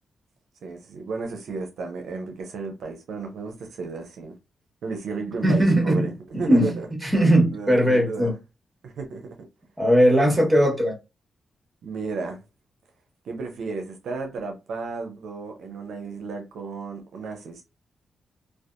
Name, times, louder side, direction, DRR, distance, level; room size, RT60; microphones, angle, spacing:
voice 1, 0.6-4.4 4.8-6.9 7.4-8.3 8.8-9.4 11.8-12.4 13.2-17.6, right 4 dB, 80° right, 0.5 m, -33 dB
voice 2, 5.4-6.1 6.3-8.3 9.8-10.9, equal, 10° right, 1.2 m, -19 dB
2.5 x 2.3 x 2.4 m
cardioid pair, 60°, 0 cm